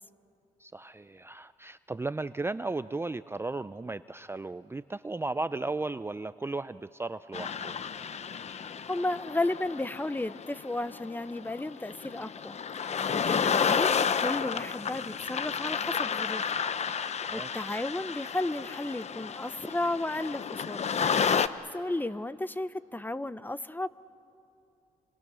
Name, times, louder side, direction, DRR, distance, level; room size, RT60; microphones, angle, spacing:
voice 1, 0.6-7.8 17.2-17.7, right 3 dB, 15° right, 13 dB, 0.5 m, -35 dB
sound 1, 7.3-21.5, left 7 dB, 50° left, 0.9 m, -31 dB
voice 2, 8.6-16.4 17.0-20.9 21.3-23.9, left 2 dB, 15° left, 15 dB, 0.8 m, -34 dB
29.0 x 24.5 x 6.3 m, 2.6 s
supercardioid pair, 60°, 14 cm